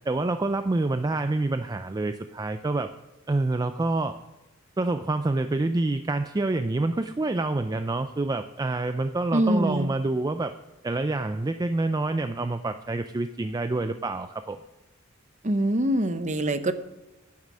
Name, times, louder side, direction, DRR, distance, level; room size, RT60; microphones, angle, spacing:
voice 1, 0.1-2.9 3.3-4.2 4.8-10.5 10.8-14.6, right 2 dB, 20° right, 9 dB, 0.4 m, -27 dB
voice 2, 9.3-9.9 15.4-16.7, right 1 dB, 35° right, 11 dB, 0.8 m, -24 dB
11.0 x 9.6 x 6.2 m, 1.0 s
head